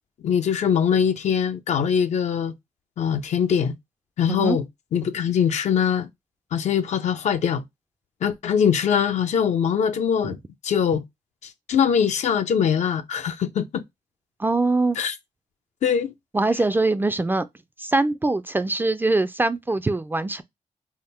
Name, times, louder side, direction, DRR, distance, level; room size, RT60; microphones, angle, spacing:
voice 1, 0.2-2.5 3.0-3.7 4.2-4.6 4.9-6.1 6.5-7.6 8.2-10.4 10.6-11.0 11.4-13.8 15.0-15.1 15.8-16.1, left 7 dB, 65° left, 0.5 m, -22 dB
voice 2, 14.4-15.0 16.3-17.5 17.8-20.4, right 2 dB, 15° right, 0.3 m, -22 dB
3.5 x 2.0 x 4.2 m
cardioid pair, 90°, 13 cm